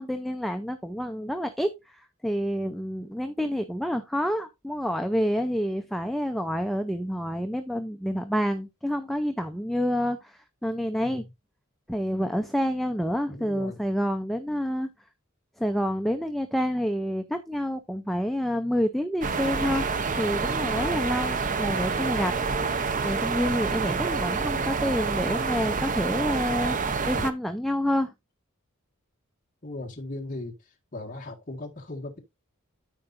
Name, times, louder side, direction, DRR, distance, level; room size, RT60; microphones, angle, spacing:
voice 1, 0.0-11.3 11.9-14.9 15.6-19.9 20.2-22.3 23.0-26.8 27.1-28.1, equal, ahead, 0.6 m, -28 dB
voice 2, 13.3-13.8 21.6-21.9 29.6-30.5 30.9-32.2, left 2 dB, 40° left, 1.8 m, -38 dB
sound 1, 19.2-27.3, right 4 dB, 40° right, 0.7 m, -27 dB
13.5 x 4.9 x 2.6 m
head